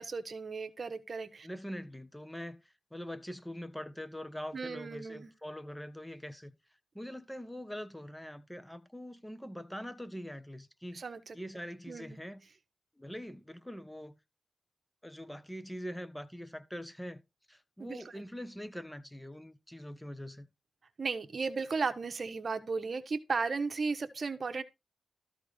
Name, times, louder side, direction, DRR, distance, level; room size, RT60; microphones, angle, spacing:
voice 1, 0.0-1.5 4.5-5.3 10.9-11.4 11.9-12.2 17.8-18.1 21.0-24.6, right 4 dB, 60° right, 1.2 m, -35 dB
voice 2, 1.4-6.5 6.9-11.0 11.3-12.4 13.0-14.2 15.0-17.2 17.5-20.5, equal, 5° left, 1.3 m, -43 dB
13.5 x 4.6 x 5.1 m
cardioid pair, 60°, 0 cm